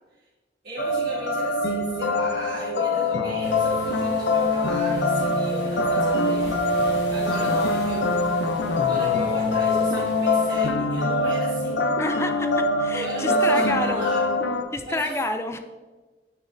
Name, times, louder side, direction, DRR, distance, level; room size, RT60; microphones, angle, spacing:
voice 1, 0.6-6.4 7.1-8.2 8.8-11.9 12.9-14.3 14.8-15.2, right 2 dB, 55° right, -9 dB, 1.2 m, -35 dB
sound 1, 0.8-14.6, left 2 dB, 85° left, 0.5 m, -23 dB
sound 2, 3.4-10.7, left 1 dB, 70° left, 1.9 m, -41 dB
voice 2, 12.0-14.0 14.7-15.6, left 2 dB, 15° left, 7 dB, 0.3 m, -29 dB
9.6 x 4.1 x 2.6 m, 1.3 s
head